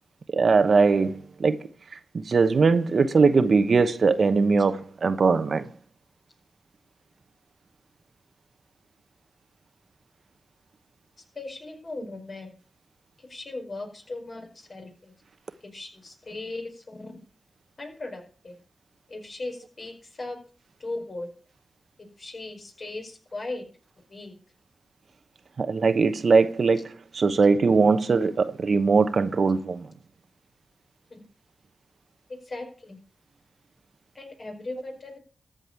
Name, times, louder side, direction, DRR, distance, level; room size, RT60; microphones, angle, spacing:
voice 1, 0.3-1.7 2.1-5.7 25.6-29.9, right 4 dB, 60° right, 1.0 m, -21 dB
voice 2, 11.3-12.5 13.2-15.1 15.6-17.2 17.8-18.6 19.1-20.4 20.8-21.3 22.2-23.7 24.1-24.3 31.1-31.2 32.4-33.0 34.1-35.2, left 2 dB, 50° left, 4.8 m, -38 dB
14.0 x 5.3 x 8.8 m
cardioid pair, 55°, 0 cm